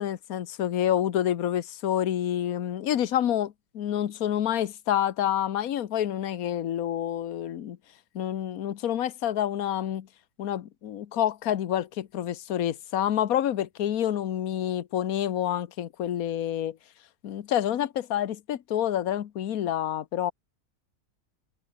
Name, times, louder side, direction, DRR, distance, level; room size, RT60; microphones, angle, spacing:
voice 1, 0.0-7.8 8.1-10.1 10.4-16.8 17.2-20.3, left 11 dB, 75° left, 1.4 m, -28 dB
omnidirectional pair, 1.5 m